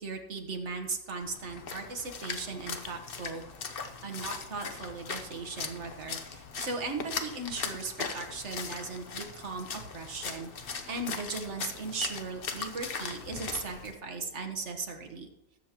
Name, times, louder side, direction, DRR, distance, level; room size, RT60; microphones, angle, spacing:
voice 1, 0.0-3.4 4.0-10.5 10.9-15.3, right 4 dB, 40° right, 4 dB, 1.3 m, -37 dB
Splash splatter, 1.2-13.9, left 5 dB, 70° left, 0.5 m, -39 dB
20.0 x 7.2 x 2.9 m, 0.89 s
omnidirectional pair, 2.1 m